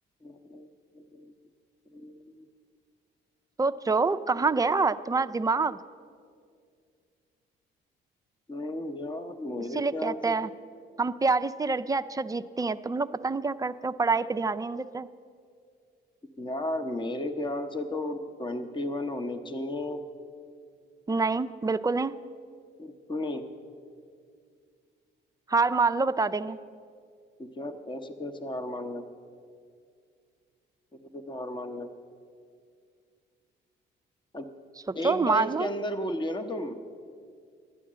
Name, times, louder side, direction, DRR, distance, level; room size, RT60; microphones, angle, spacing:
voice 1, 0.2-1.3 1.9-2.3 4.7-4.9 8.5-10.5 16.4-20.0 22.8-23.4 27.4-29.0 31.1-31.9 34.3-34.4 34.9-36.8, left 1 dB, 25° left, 8 dB, 0.9 m, -34 dB
voice 2, 3.6-5.8 9.7-10.5 11.0-15.1 21.1-22.2 25.5-26.6 34.9-35.7, right 4 dB, 20° right, 10 dB, 0.4 m, -26 dB
12.0 x 9.1 x 7.4 m, 2.2 s
cardioid pair, 90°, 20 cm